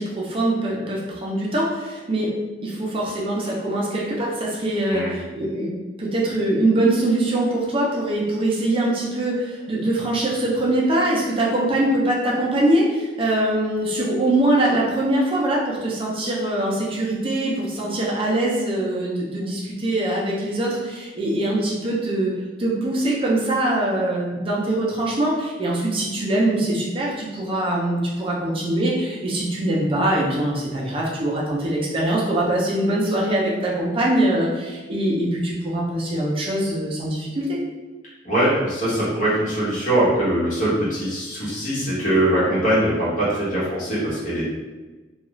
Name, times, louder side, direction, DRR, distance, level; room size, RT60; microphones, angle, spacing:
voice 1, 0.0-2.3 2.6-22.3 22.6-37.6, right 1 dB, 30° right, -4 dB, 0.5 m, -23 dB
voice 2, 4.9-5.2 38.2-44.5, right 1 dB, 45° left, -9 dB, 1.1 m, -22 dB
2.3 x 2.3 x 3.0 m, 1.2 s
head